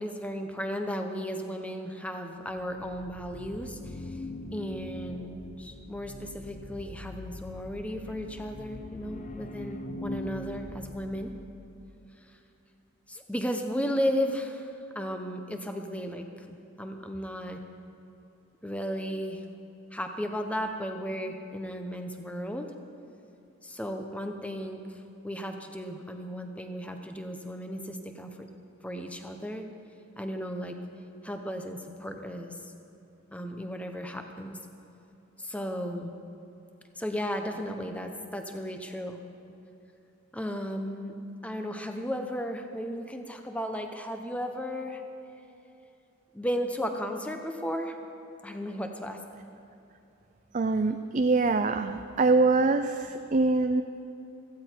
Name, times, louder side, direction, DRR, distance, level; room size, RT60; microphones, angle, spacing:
voice 1, 0.0-4.2 4.5-11.3 13.1-17.6 18.6-19.4 19.9-22.7 23.6-28.5 28.8-29.7 30.2-30.8 31.2-32.7 33.3-34.6 35.4-36.1 37.0-39.2 40.3-45.0 46.3-48.0 48.4-49.2, equal, 5° left, 5 dB, 0.9 m, -35 dB
sound 1, 2.6-11.9, left 1 dB, 35° left, 0.6 m, -42 dB
voice 2, 50.5-53.8, right 3 dB, 35° right, 7 dB, 0.4 m, -24 dB
17.0 x 15.0 x 4.6 m, 2.8 s
head